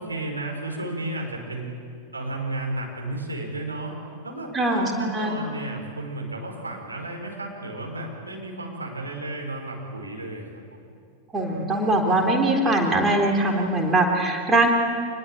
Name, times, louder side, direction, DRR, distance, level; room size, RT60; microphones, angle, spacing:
voice 1, 0.0-1.7 2.1-3.9 4.2-10.9, right 2 dB, 80° right, 0 dB, 4.7 m, -33 dB
voice 2, 4.5-5.4 11.3-14.7, right 2 dB, 15° right, 2 dB, 3.7 m, -22 dB
26.5 x 20.0 x 8.7 m, 2.3 s
figure-of-eight pair, 90°, 0 cm